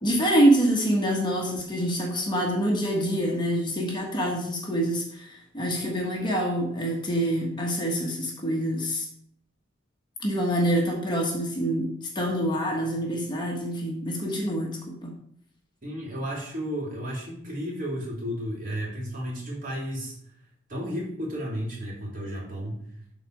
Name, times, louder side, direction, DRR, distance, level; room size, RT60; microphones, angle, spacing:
voice 1, 0.0-9.1 10.2-15.1, right 1 dB, 25° left, -1 dB, 1.4 m, -26 dB
voice 2, 15.8-20.2 20.7-23.0, equal, 45° right, -3 dB, 3.1 m, -33 dB
12.0 x 4.1 x 4.7 m, 0.69 s
head